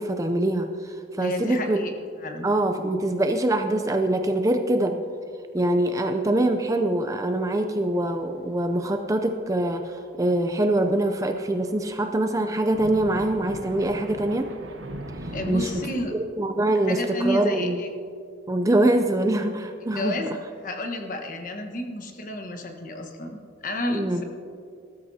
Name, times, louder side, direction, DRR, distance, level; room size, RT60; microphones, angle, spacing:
voice 1, 0.0-1.8 2.4-5.0 5.5-14.5 15.5-15.7 16.1-17.8 18.5-20.1 23.9-24.2, right 1 dB, 15° right, 6 dB, 0.4 m, -24 dB
voice 2, 1.2-1.9 2.2-2.5 15.3-16.1 16.9-17.9 19.8-20.3 20.6-24.2, left 1 dB, 40° left, 4 dB, 1.2 m, -31 dB
Thunder, 7.9-8.4 8.6-8.7 9.7-16.0, right 1 dB, 70° right, 1.1 m, -40 dB
20.0 x 13.0 x 2.8 m, 2.4 s
head